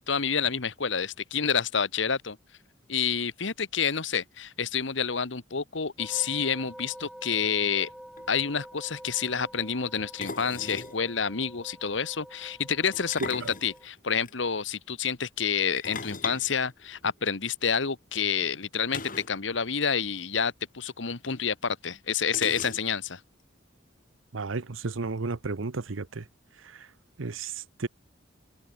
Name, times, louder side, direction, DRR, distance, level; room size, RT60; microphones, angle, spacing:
voice 1, 0.0-2.4 2.9-7.9 8.3-19.0 19.3-23.2, left 6 dB, 70° left, 1.3 m, -29 dB
sound 1, 6.0-13.9, equal, ahead, 5.4 m, -47 dB
sound 2, 7.9-8.4 10.2-11.0 12.9-14.3 15.8-17.4 18.9-19.4 19.7-19.8 20.1-20.2 21.3-21.4 22.3-23.1, left 5 dB, 45° left, 4.4 m, -38 dB
voice 2, 24.3-26.2 27.2-27.5 27.8-27.9, right 3 dB, 85° right, 0.9 m, -32 dB
head